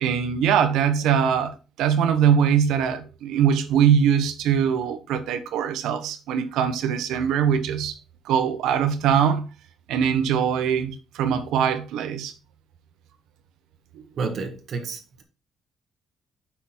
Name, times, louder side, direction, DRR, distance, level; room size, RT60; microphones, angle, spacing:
voice 1, 0.0-8.0 8.2-9.5 9.9-12.3 14.0-14.1, right 8 dB, 90° right, 1.0 m, -22 dB
voice 2, 14.2-15.2, right 4 dB, 60° right, 1.6 m, -30 dB
6.0 x 5.9 x 4.2 m
cardioid pair, 90°, 0 cm